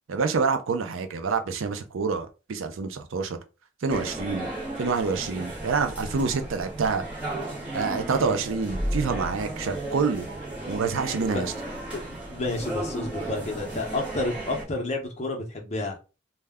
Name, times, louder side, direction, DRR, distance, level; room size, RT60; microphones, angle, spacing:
voice 1, 0.1-3.4 3.8-4.5 4.8-7.0 7.7-10.3 10.7-11.5, right 5 dB, 90° right, 0.5 m, -27 dB
sound 1, 3.9-14.6, right 1 dB, 5° right, 0.9 m, -34 dB
voice 2, 11.9-16.0, left 2 dB, 35° left, 0.6 m, -30 dB
2.2 x 2.1 x 3.4 m
head